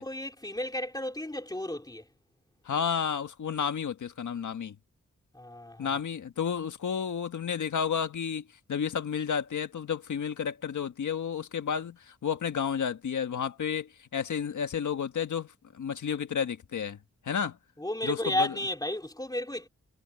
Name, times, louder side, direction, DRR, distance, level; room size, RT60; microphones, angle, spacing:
voice 1, 0.0-2.1 5.3-6.0 17.8-19.7, left 1 dB, 15° left, 3.2 m, -33 dB
voice 2, 2.6-4.7 5.8-8.4 8.7-15.5 15.7-17.0 17.2-17.6 18.0-18.5, left 7 dB, 85° left, 1.6 m, -31 dB
wide cardioid pair, 95°, 29 cm